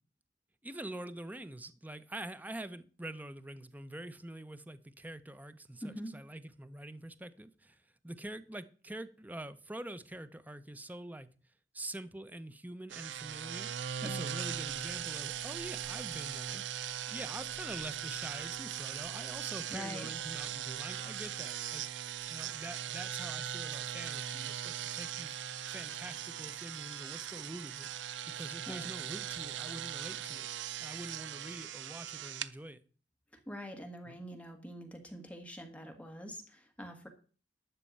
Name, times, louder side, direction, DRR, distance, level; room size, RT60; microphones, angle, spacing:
voice 1, 0.6-11.3 11.7-13.7 14.0-16.6 17.1-21.8 22.3-25.4 25.7-27.9 28.3-30.5 30.8-32.8 34.1-34.2, right 1 dB, 10° right, 0.6 m, -45 dB
sound 1, 12.9-32.5, right 9 dB, 80° right, 0.6 m, -40 dB
voice 2, 19.7-20.1 28.7-28.9 33.5-37.1, equal, 10° left, 1.6 m, -44 dB
12.5 x 4.5 x 8.5 m
head